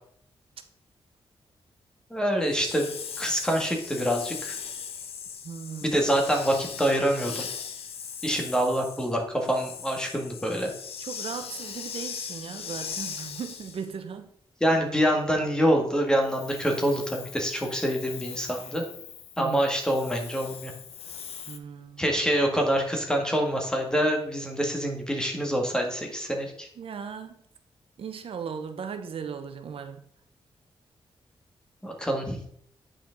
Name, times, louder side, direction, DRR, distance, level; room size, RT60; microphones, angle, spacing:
voice 1, 2.1-2.9 3.2-4.5 5.8-7.5 8.2-10.7 14.6-18.8 19.4-20.7 22.0-26.7 31.8-32.4, equal, 10° left, 1 dB, 1.7 m, -26 dB
Hiss, 2.4-13.9 16.2-21.6, left 7 dB, 90° left, 0.7 m, -40 dB
voice 2, 5.4-6.0 11.0-14.3 19.4-19.7 21.5-22.2 26.8-27.4 28.0-30.1, right 6 dB, 70° right, 8 dB, 0.8 m, -37 dB
8.8 x 5.1 x 3.9 m, 0.66 s
cardioid pair, 95°, 10 cm